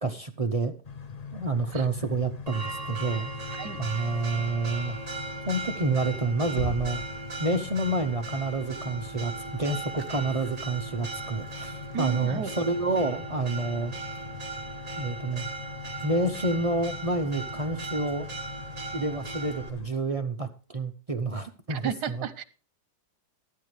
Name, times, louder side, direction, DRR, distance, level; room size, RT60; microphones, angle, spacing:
voice 1, 0.0-0.7 1.3-3.3 3.8-5.0 5.5-7.0 7.4-13.9 15.0-15.5 16.0-18.3 18.9-22.3, right 2 dB, 40° right, 6 dB, 0.5 m, -29 dB
sound 1, 0.8-19.9, left 6 dB, 50° left, 0.4 m, -42 dB
Church bell, 2.5-19.7, right 4 dB, 25° right, 1.5 m, -38 dB
Bass drum, 6.6-8.0, right 2 dB, 75° left, 3.4 m, -36 dB
voice 2, 11.9-12.5 21.7-22.4, right 8 dB, 75° right, 14 dB, 1.5 m, -32 dB
14.0 x 12.5 x 3.2 m, 0.35 s
omnidirectional pair, 1.8 m